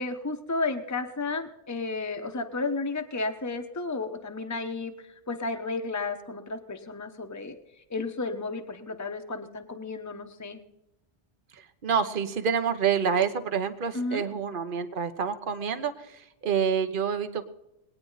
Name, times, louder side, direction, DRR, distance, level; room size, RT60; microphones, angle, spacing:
voice 1, 0.0-7.6 7.9-10.6 13.9-14.3, left 3 dB, 15° left, 5 dB, 1.0 m, -32 dB
voice 2, 11.8-15.9 16.4-17.4, right 7 dB, 50° right, 9 dB, 1.1 m, -27 dB
20.5 x 9.6 x 4.0 m, 0.88 s
omnidirectional pair, 1.1 m